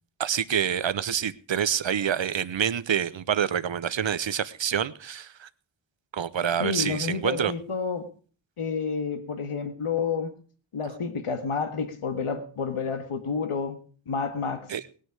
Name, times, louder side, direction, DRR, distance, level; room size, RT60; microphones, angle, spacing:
voice 1, 0.2-5.5 6.1-7.5 14.7-14.8, right 8 dB, 65° right, 0.9 m, -27 dB
voice 2, 6.6-8.1 8.6-10.3 10.7-13.8 14.1-14.7, left 5 dB, 85° left, 1.8 m, -29 dB
19.0 x 9.4 x 4.8 m
wide cardioid pair, 95°, 50 cm